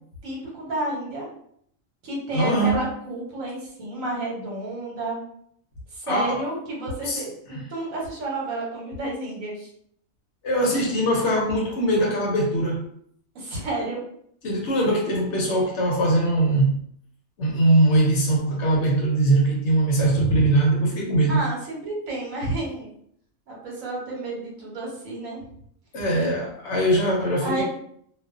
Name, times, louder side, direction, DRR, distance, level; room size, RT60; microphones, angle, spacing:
voice 1, 0.2-1.3 2.0-5.2 5.9-9.7 13.3-14.0 20.0-20.5 21.3-22.9 23.5-25.4 27.4-27.6, right 2 dB, 75° right, -3 dB, 1.2 m, -30 dB
voice 2, 2.3-2.9 6.1-6.4 7.0-7.2 7.5-7.6 10.4-12.8 14.4-16.8 17.4-21.4 25.9-27.6, right 1 dB, 65° left, -1 dB, 0.9 m, -21 dB
2.4 x 2.3 x 2.3 m, 0.66 s
omnidirectional pair, 1.4 m